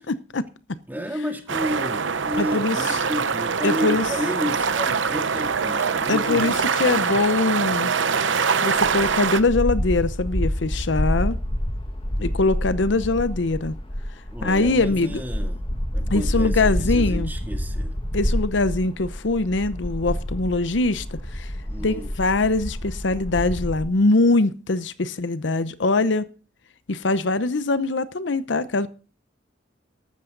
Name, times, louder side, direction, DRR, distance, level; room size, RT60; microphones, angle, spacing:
voice 1, 0.0-0.8 2.4-2.8 3.6-4.1 6.1-7.9 8.6-11.4 12.2-13.7 14.4-15.2 16.1-17.3 18.1-21.5 21.8-26.3 26.9-28.9, left 3 dB, 75° left, 0.8 m, -22 dB
voice 2, 0.9-6.6 9.0-9.2 14.3-15.6 15.9-18.0 21.6-22.1, equal, 10° right, 2.2 m, -31 dB
River in a city (Rhine Duesseldorf) close recording, 1.5-9.4, right 5 dB, 80° right, 0.9 m, -24 dB
sound 1, 8.8-23.8, equal, 30° left, 1.9 m, -28 dB
14.0 x 12.5 x 3.9 m
head